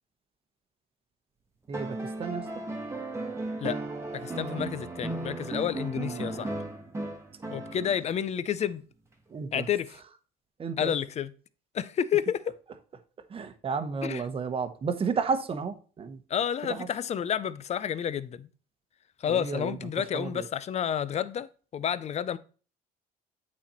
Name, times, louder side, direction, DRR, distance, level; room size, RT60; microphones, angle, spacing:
sound 1, 1.7-8.2 9.6-9.7, right 2 dB, 15° right, 1.4 m, -35 dB
voice 1, 1.7-2.4 9.3-9.7 10.6-10.9 13.3-16.2 16.8-16.9 19.3-20.4, right 5 dB, 35° right, 1.0 m, -32 dB
voice 2, 4.1-6.5 7.5-8.8 9.5-10.0 10.8-11.3 11.7-12.5 14.0-14.2 16.3-18.5 19.2-21.5 21.7-22.4, left 9 dB, 40° left, 0.5 m, -30 dB
8.6 x 4.2 x 4.3 m
cardioid pair, 110°, 17 cm